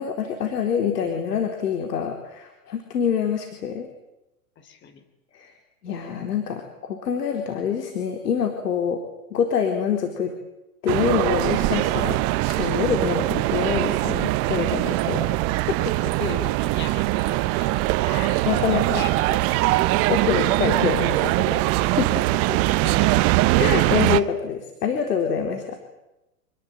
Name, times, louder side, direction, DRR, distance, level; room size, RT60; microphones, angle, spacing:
voice 1, 0.0-3.9 5.3-5.5 5.8-9.0 9.3-10.3 10.8-12.2 12.5-15.2 15.7-15.8 18.0-19.0 20.1-22.4 23.6-25.8, left 7 dB, 80° left, 5 dB, 4.2 m, -26 dB
voice 2, 4.6-5.0 14.7-15.0 16.2-17.8 18.4-19.4 22.8-23.4, left 7 dB, 25° left, 10 dB, 3.2 m, -37 dB
sound 1, 10.9-24.2, right 18 dB, 30° right, 0.9 m, -22 dB
27.5 x 20.0 x 9.1 m, 0.94 s
hypercardioid pair, 135°, 47 cm